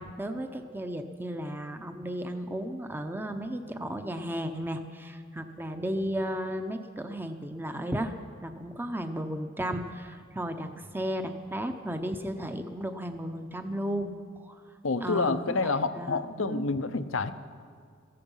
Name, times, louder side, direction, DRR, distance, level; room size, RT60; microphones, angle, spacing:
voice 1, 0.0-8.1 8.4-14.1 14.4-14.6 15.0-15.6 15.9-16.7, equal, 10° right, 7 dB, 0.7 m, -34 dB
voice 2, 14.8-17.3, left 3 dB, 85° left, 11 dB, 0.8 m, -28 dB
17.5 x 15.0 x 5.5 m, 2.2 s
head